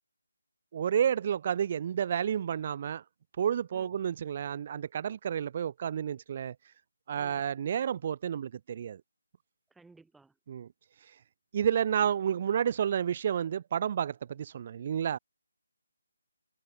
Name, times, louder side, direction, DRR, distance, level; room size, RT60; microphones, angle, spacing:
voice 1, 0.7-3.0 3.4-6.5 7.1-9.0 10.5-10.7 11.5-15.2, right 8 dB, 35° right, 1.5 m, -30 dB
voice 2, 9.7-10.3, right 3 dB, 5° right, 3.9 m, -57 dB
open air
figure-of-eight pair, 155°, 0 cm